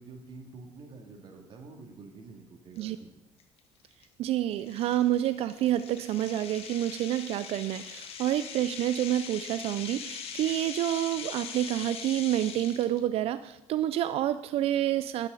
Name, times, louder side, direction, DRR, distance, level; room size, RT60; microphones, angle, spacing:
voice 1, 0.0-3.1, right 3 dB, 50° right, 3 dB, 2.1 m, -48 dB
sound 1, 2.8-2.9 3.4-3.6 4.0-4.1 4.7-13.0, left 7 dB, 65° left, 1.3 m, -41 dB
voice 2, 4.2-15.3, right 12 dB, 65° right, 13 dB, 0.4 m, -28 dB
10.5 x 6.6 x 6.9 m, 0.94 s
cardioid pair, 115°, 11 cm